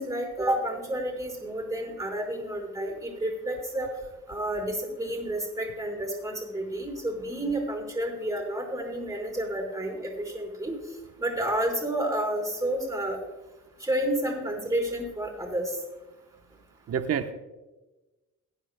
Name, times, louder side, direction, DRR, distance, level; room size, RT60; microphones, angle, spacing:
voice 1, 0.0-3.9 4.3-10.7 11.2-13.2 13.8-15.8, right 1 dB, 10° right, 1 dB, 4.6 m, -30 dB
voice 2, 16.9-17.3, right 8 dB, 55° right, 8 dB, 1.0 m, -28 dB
21.5 x 9.9 x 2.2 m, 1.1 s
cardioid pair, 90°, 30 cm